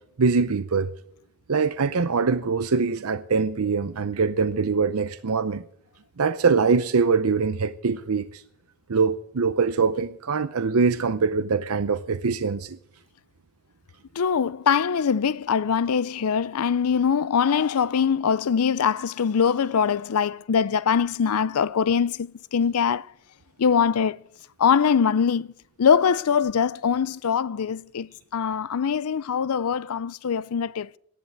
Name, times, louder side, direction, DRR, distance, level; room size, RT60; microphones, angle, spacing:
voice 1, 0.2-0.9 1.5-5.6 6.2-8.4 8.9-12.8, right 5 dB, 80° right, 0.6 m, -23 dB
voice 2, 14.2-23.1 23.6-24.2 24.6-25.5 25.8-31.0, left 7 dB, 90° left, 0.5 m, -23 dB
13.0 x 11.0 x 8.0 m
head